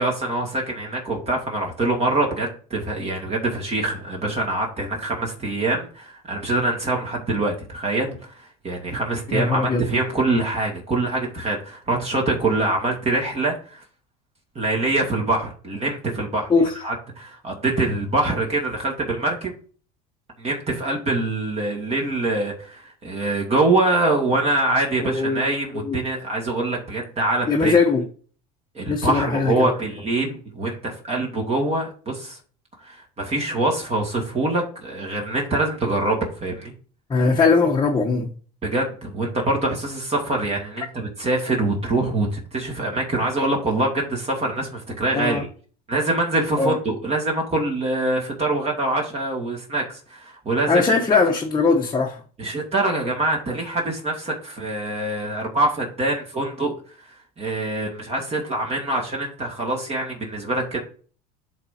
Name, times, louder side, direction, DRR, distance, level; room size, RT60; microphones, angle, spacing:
voice 1, 0.0-13.8 14.6-19.5 20.4-27.7 28.7-32.4 32.8-36.7 38.6-45.5 45.9-50.8 52.4-56.7 57.1-60.8, right 2 dB, 30° right, 2.1 m, -24 dB
voice 2, 9.3-9.8 16.5-16.7 25.0-26.0 27.5-28.1 28.9-29.7 37.1-38.3 45.1-45.4 46.6-46.8 50.7-52.2, left 4 dB, 20° left, 1.1 m, -20 dB
11.0 x 3.8 x 2.8 m
supercardioid pair, 105°, 21 cm